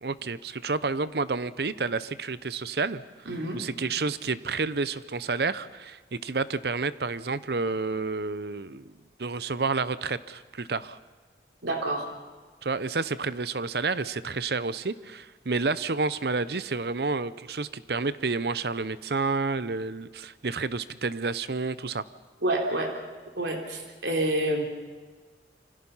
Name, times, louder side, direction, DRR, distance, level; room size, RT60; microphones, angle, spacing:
voice 1, 0.0-3.0 3.5-8.9 9.2-11.0 12.6-22.0, right 4 dB, 65° right, 16 dB, 0.8 m, -30 dB
voice 2, 3.3-3.6 11.6-12.1 22.4-23.0 23.4-24.7, right 1 dB, 90° right, 1 dB, 3.8 m, -28 dB
27.5 x 25.0 x 5.7 m, 1.4 s
head